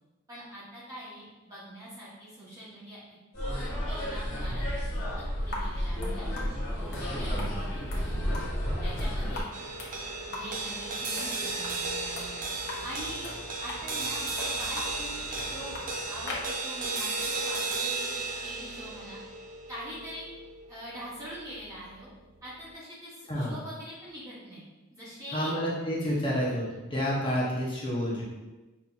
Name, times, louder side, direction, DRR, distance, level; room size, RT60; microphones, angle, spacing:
voice 1, 0.3-3.0 3.5-4.9 5.2-6.3 6.8-8.4 8.8-9.4 10.3-12.4 12.8-13.3 13.6-15.8 16.1-18.2 18.4-19.2 19.7-20.3 20.7-22.1 22.4-24.6 24.9-25.5, equal, 15° right, -10 dB, 1.0 m, -43 dB
sound 1, 3.3-9.4, equal, 75° left, 1.3 m, -31 dB
sound 2, 5.4-16.5, left 2 dB, 55° left, 0.9 m, -42 dB
voice 2, 7.1-7.5 23.3-23.6 25.3-28.2, equal, 25° left, -5 dB, 0.7 m, -29 dB
sound 3, 9.5-22.0, right 3 dB, 40° right, 0.5 m, -35 dB
5.4 x 2.7 x 2.4 m, 1.1 s
head